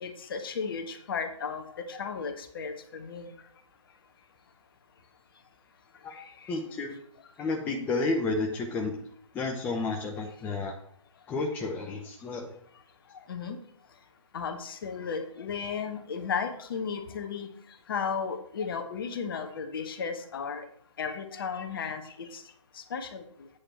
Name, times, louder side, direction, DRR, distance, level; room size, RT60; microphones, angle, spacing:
voice 1, 0.0-3.3 6.1-6.5 13.3-13.6 14.3-17.5 17.9-20.7 21.0-22.4 22.7-23.2, left 6 dB, 45° left, 7 dB, 1.3 m, -34 dB
voice 2, 6.5-7.0 7.4-9.0 9.3-10.8 11.3-12.5, left 3 dB, 10° left, 1 dB, 0.7 m, -31 dB
8.3 x 5.0 x 7.2 m, 0.66 s
figure-of-eight pair, 140°, 17 cm